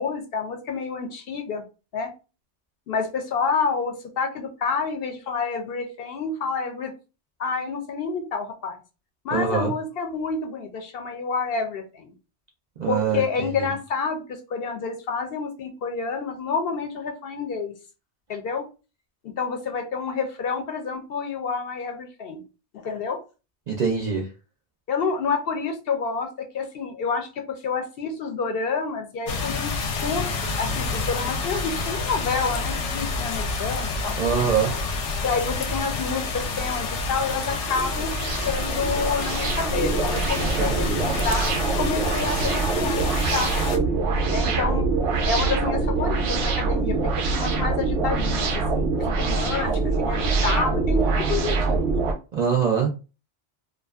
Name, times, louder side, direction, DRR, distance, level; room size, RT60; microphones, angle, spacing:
voice 1, 0.0-1.6 1.9-2.1 2.9-6.9 7.4-8.8 9.2-12.1 12.9-17.7 18.3-18.6 19.4-22.4 22.8-23.2 24.9-30.3 30.6-34.2 35.2-43.0 43.3-43.5 44.3-44.9 45.3-51.8, left 5 dB, 65° left, 4 dB, 0.7 m, -28 dB
voice 2, 9.3-9.7 12.8-13.7 23.7-24.3 34.2-34.7 40.4-41.0 52.3-52.9, right 6 dB, 55° right, 0 dB, 0.5 m, -24 dB
sound 1, 29.3-43.8, left 4 dB, 90° left, 0.9 m, -29 dB
sound 2, 37.0-52.1, right 3 dB, 90° right, 0.9 m, -24 dB
2.5 x 2.2 x 2.3 m, 0.31 s
omnidirectional pair, 1.2 m